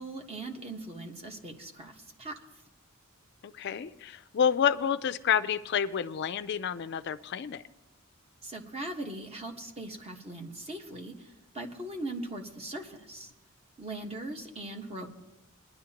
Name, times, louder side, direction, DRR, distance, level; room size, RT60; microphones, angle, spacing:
voice 1, 0.0-2.4 8.4-13.3 13.8-15.1, right 2 dB, 30° right, 3 dB, 1.3 m, -40 dB
voice 2, 3.4-7.6, left 8 dB, 50° left, 12 dB, 0.4 m, -29 dB
22.0 x 11.0 x 2.9 m, 0.94 s
head